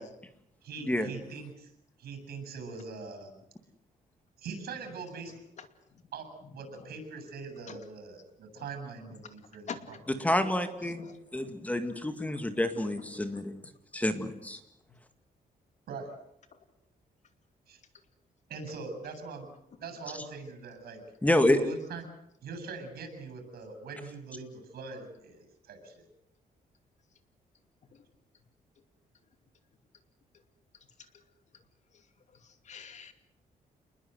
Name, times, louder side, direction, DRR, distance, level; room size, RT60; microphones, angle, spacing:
voice 1, 0.6-1.7 2.0-3.3 4.4-5.3 6.1-10.3 15.9-16.1 17.7-17.8 18.5-19.5 19.8-21.0 21.5-22.0 22.4-26.1, right 4 dB, 90° right, 7 dB, 7.9 m, -42 dB
voice 2, 9.7-10.0 10.8-11.5 12.2-12.3 13.3-13.4 27.9-28.0 32.7-33.1, left 6 dB, 50° left, 9 dB, 2.6 m, -44 dB
voice 3, 10.2-13.5 13.9-14.6 21.2-21.6, left 1 dB, 10° left, 9 dB, 2.1 m, -28 dB
28.5 x 21.0 x 8.0 m, 0.78 s
cardioid pair, 145°, 16 cm